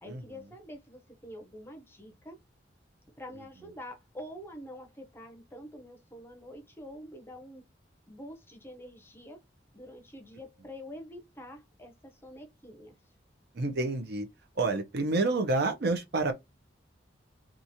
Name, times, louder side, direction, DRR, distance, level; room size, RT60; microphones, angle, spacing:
voice 1, 0.0-2.4 3.2-7.6 8.1-9.4 9.7-12.9, equal, 15° left, 0.6 m, -46 dB
voice 2, 13.5-14.3 14.6-16.3, right 3 dB, 60° right, 0.6 m, -28 dB
2.9 x 2.4 x 2.6 m
head